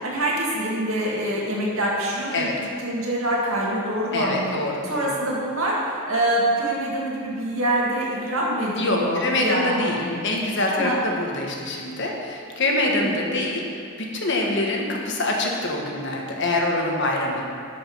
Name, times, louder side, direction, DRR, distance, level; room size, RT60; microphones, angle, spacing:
voice 1, 0.0-4.6 4.8-10.3 10.7-11.0 12.6-13.2 17.2-17.4, right 1 dB, 75° right, -4 dB, 2.1 m, -25 dB
voice 2, 4.1-5.1 8.8-10.0 10.2-13.6 14.0-17.4, left 2 dB, 55° left, -1 dB, 1.3 m, -25 dB
11.5 x 5.3 x 5.5 m, 2.3 s
head